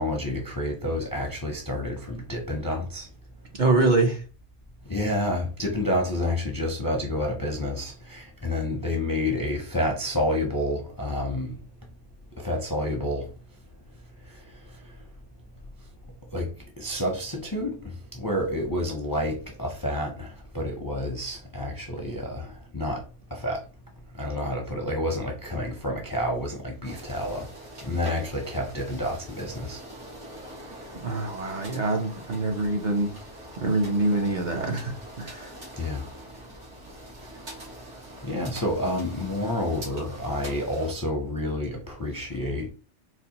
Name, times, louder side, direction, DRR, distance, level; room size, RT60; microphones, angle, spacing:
voice 1, 0.0-3.1 4.9-11.6 12.4-13.3 16.3-16.5 16.8-23.0 23.3-23.6 24.2-27.5 27.8-29.8 35.8-36.0 38.2-42.7, left 1 dB, 30° left, 0.4 m, -29 dB
voice 2, 3.6-4.2 31.0-33.1 33.5-35.5, right 2 dB, 50° right, 0.6 m, -25 dB
sound 1, 26.8-40.9, right 1 dB, 90° right, 1.9 m, -44 dB
4.0 x 2.5 x 2.8 m
omnidirectional pair, 1.2 m